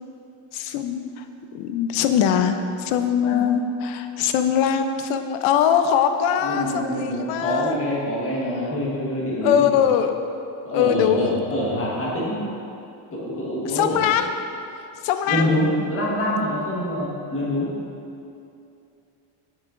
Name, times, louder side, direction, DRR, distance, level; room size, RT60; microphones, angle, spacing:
voice 1, 0.5-1.2 1.5-7.8 9.4-10.1 10.7-11.3 13.7-14.3 15.0-15.5, left 8 dB, 75° left, 8 dB, 0.7 m, -21 dB
voice 2, 6.4-9.9 10.6-12.4 13.1-14.1 15.3-17.7, equal, 25° left, -5 dB, 1.4 m, -25 dB
9.3 x 7.5 x 2.5 m, 2.7 s
cardioid pair, 170°, 50 cm